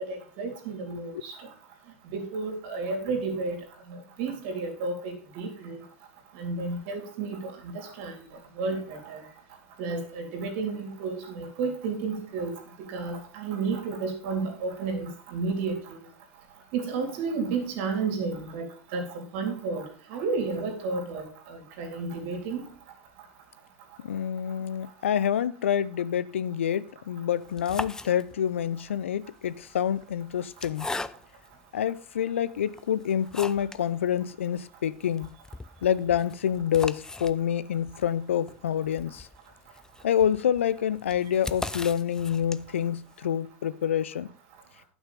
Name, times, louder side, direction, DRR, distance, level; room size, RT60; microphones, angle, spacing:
voice 1, 0.0-1.3 2.1-3.6 3.9-5.8 6.4-8.1 8.6-9.2 9.8-12.5 12.9-16.0 16.7-19.8 20.1-22.7, right 4 dB, 60° right, 3.4 m, -32 dB
voice 2, 24.0-30.9 31.7-35.3 35.8-39.3 40.0-44.3, left 9 dB, 75° left, 0.5 m, -27 dB
sound 1, 27.4-28.6 29.5-31.5 32.2-32.3 32.7-33.9 34.2-34.3 34.6-34.7 35.0-42.9, left 2 dB, 10° left, 0.5 m, -39 dB
11.0 x 6.2 x 5.2 m
figure-of-eight pair, 80°, 7 cm